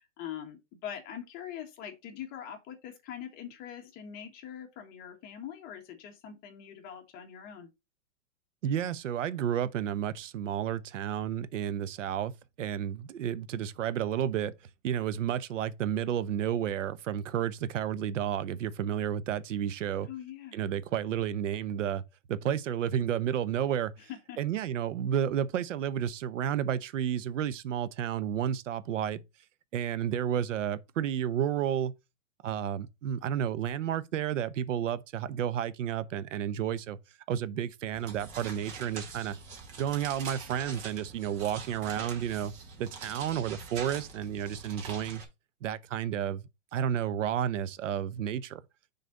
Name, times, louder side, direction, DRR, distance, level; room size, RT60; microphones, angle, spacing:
voice 1, 0.0-7.7 20.0-20.6 24.0-24.4, left 9 dB, 25° left, 1.6 m, -43 dB
voice 2, 8.6-12.3 12.6-14.5 14.8-20.1 20.5-22.0 22.3-24.1 24.4-29.2 29.7-31.9 32.4-37.0 37.3-39.4 39.8-42.5 42.8-45.2 45.6-48.6, right 9 dB, 85° right, 0.8 m, -31 dB
sound 1, 37.9-45.3, right 5 dB, 35° right, 2.2 m, -44 dB
6.5 x 4.0 x 5.3 m
supercardioid pair, 165°, 36 cm